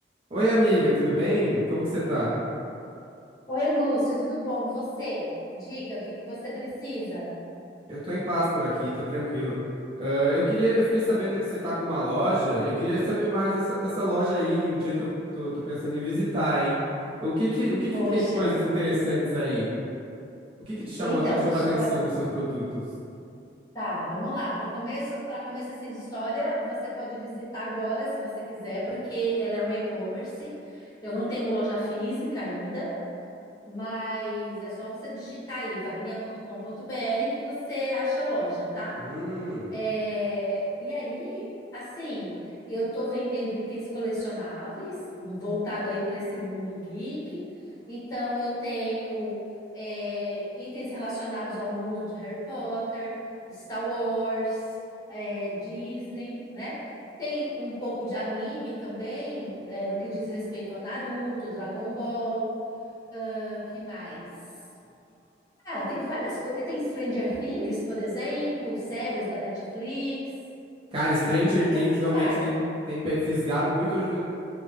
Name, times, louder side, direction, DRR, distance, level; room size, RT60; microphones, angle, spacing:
voice 1, 0.3-2.3 7.9-9.6 10.0-15.1 15.3-16.7 17.2-19.7 20.7-22.6 39.0-39.7 70.9-72.6 72.9-74.2, equal, 30° right, -11 dB, 0.6 m, -26 dB
voice 2, 3.5-7.3 17.9-18.5 21.0-21.9 23.7-32.9 33.7-39.0 39.7-42.3 42.7-47.4 47.9-49.4 49.7-53.1 53.5-54.6 55.1-56.8 57.2-62.6 63.1-64.4 65.6-70.2 71.2-72.6, equal, 20° left, -11 dB, 1.3 m, -31 dB
3.5 x 2.2 x 3.5 m, 2.6 s
head